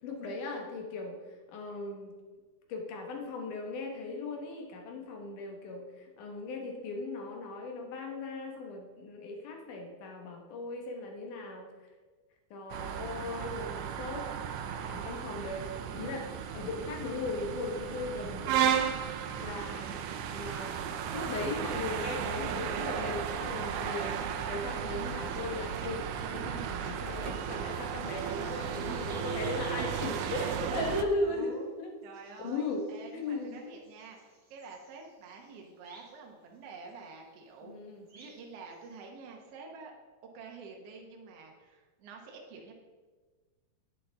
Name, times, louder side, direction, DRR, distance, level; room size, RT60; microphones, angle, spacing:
voice 1, 0.0-1.2 1.5-2.1 2.7-11.7 12.5-14.3 14.9-18.9 19.3-20.0 20.2-20.7 21.1-24.2 24.5-26.0 26.3-31.9 32.4-32.8 33.1-33.6 37.6-38.1, left 2 dB, 75° left, 2 dB, 2.7 m, -37 dB
sound 1, 12.7-31.0, right 8 dB, 80° right, 1.8 m, -35 dB
sound 2, 27.8-39.1, right 2 dB, 35° right, 1.5 m, -59 dB
voice 2, 31.2-31.7 32.0-37.7 38.1-39.9 40.3-42.7, right 4 dB, 60° right, 1 dB, 1.9 m, -48 dB
9.9 x 8.3 x 3.5 m, 1.4 s
omnidirectional pair, 3.8 m